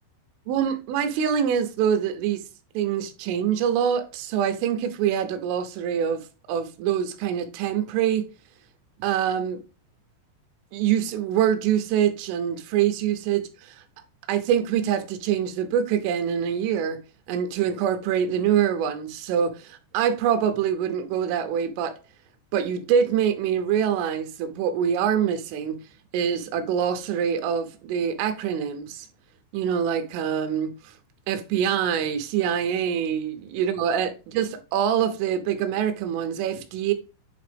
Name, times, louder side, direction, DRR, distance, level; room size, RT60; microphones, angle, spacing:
voice 1, 0.5-2.4 2.7-8.3 9.0-9.6 10.7-13.8 14.3-17.0 17.3-21.9 22.5-25.8 26.1-29.1 29.5-30.9 31.3-36.9, right 8 dB, 85° right, 3.3 m, -25 dB
8.6 x 3.4 x 3.3 m
omnidirectional pair, 5.6 m